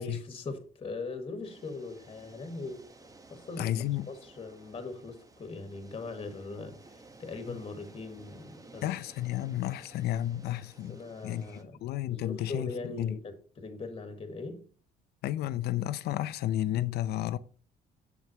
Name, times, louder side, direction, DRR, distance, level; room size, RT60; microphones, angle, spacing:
voice 1, 0.0-2.8 3.3-8.8 10.8-11.8 12.1-14.7, left 3 dB, 35° left, 1.7 m, -40 dB
sound 1, 1.4-11.6, right 3 dB, 20° right, 1.0 m, -55 dB
voice 2, 3.6-4.1 7.5-7.6 8.8-11.4 11.8-12.7 13.0-13.2 15.2-17.4, left 13 dB, 70° left, 0.7 m, -32 dB
7.4 x 7.2 x 3.0 m
cardioid pair, 110°, 17 cm